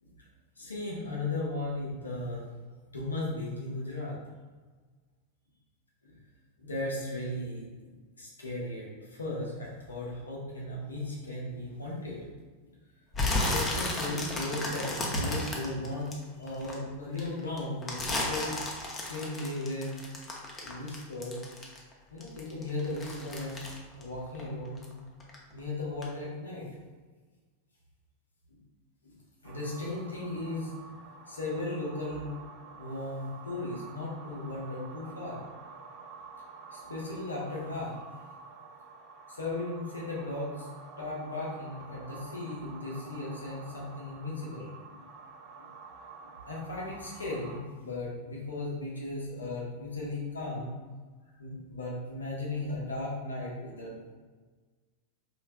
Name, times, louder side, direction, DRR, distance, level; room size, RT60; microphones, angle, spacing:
voice 1, 0.6-2.4 2.9-4.2 6.0-6.2 6.6-7.9 8.2-12.2 13.5-18.6 19.0-20.1 20.6-21.4 22.1-23.7 24.0-24.9 25.5-26.6 29.0-29.1 29.4-30.9 31.3-32.3 32.6-35.4 36.7-38.0 39.3-40.7 41.0-45.0 46.5-50.7 51.4-54.1, left 2 dB, 75° left, -4 dB, 1.0 m, -36 dB
sound 1, 13.1-16.7 17.2-21.9 22.2-24.9 25.2-25.6 26.0-26.1, left 2 dB, 20° left, 0.7 m, -33 dB
sound 2, 29.4-47.6, right 4 dB, 40° right, 0.4 m, -49 dB
4.5 x 3.2 x 2.2 m, 1.4 s
figure-of-eight pair, 90°, 0 cm